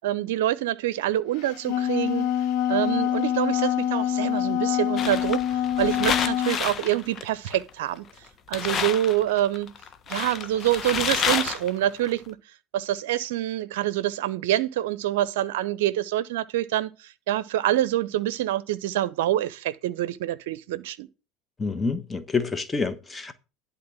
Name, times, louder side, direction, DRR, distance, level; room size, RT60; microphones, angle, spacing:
voice 1, 0.0-2.3 2.7-9.7 10.1-12.4 12.7-21.1, right 13 dB, 70° right, 0.5 m, -26 dB
Wind instrument woodwind instrument, 1.4-6.6, left 10 dB, 60° left, 1.1 m, -25 dB
sound 1, 5.0-7.8 8.2-8.3 8.5-12.1, left 7 dB, 40° left, 1.2 m, -29 dB
voice 2, 21.6-23.3, left 4 dB, 20° left, 1.2 m, -27 dB
11.5 x 4.2 x 7.3 m
hypercardioid pair, 75°, 0 cm